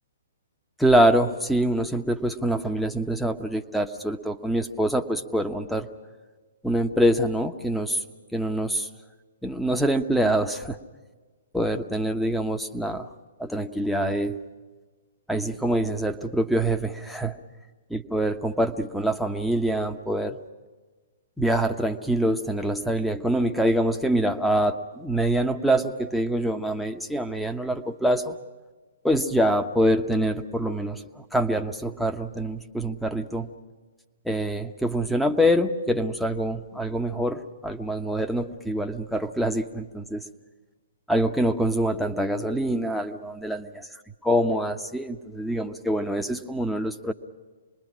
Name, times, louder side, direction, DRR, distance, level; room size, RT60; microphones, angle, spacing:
voice 1, 0.8-5.9 6.6-8.0 8.3-8.9 9.4-10.8 11.5-13.1 13.4-14.4 15.3-17.3 17.9-20.4 21.4-28.4 29.0-33.5 34.2-40.2 41.1-43.6 44.2-47.1, right 1 dB, ahead, 6 dB, 1.1 m, -25 dB
27.0 x 21.5 x 6.2 m, 1.4 s
figure-of-eight pair, 120°, 0 cm